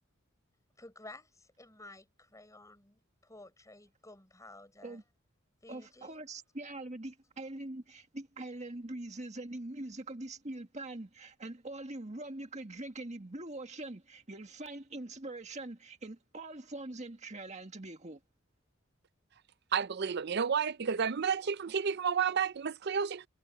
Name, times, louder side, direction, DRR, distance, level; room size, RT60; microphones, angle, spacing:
voice 1, 0.8-5.0 5.6-6.2, left 2 dB, 15° left, 5.9 m, -53 dB
voice 2, 5.7-18.2, right 2 dB, 35° right, 1.8 m, -43 dB
voice 3, 19.7-23.3, right 6 dB, 50° right, 0.5 m, -31 dB
head